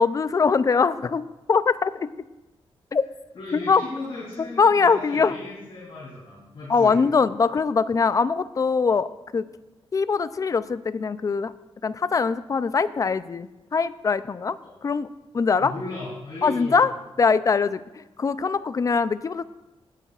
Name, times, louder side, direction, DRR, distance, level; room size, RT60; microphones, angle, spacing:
voice 1, 0.0-2.1 2.9-3.0 3.5-3.8 4.6-5.4 6.7-9.5 9.9-11.5 11.8-15.1 15.3-15.7 16.4-16.9 17.2-19.4, left 5 dB, 35° left, 15 dB, 0.4 m, -22 dB
voice 2, 3.3-7.0 14.6-14.8 15.6-16.8, left 2 dB, 50° left, -7 dB, 3.2 m, -36 dB
16.5 x 9.0 x 2.4 m, 1.0 s
wide cardioid pair, 125°, 10 cm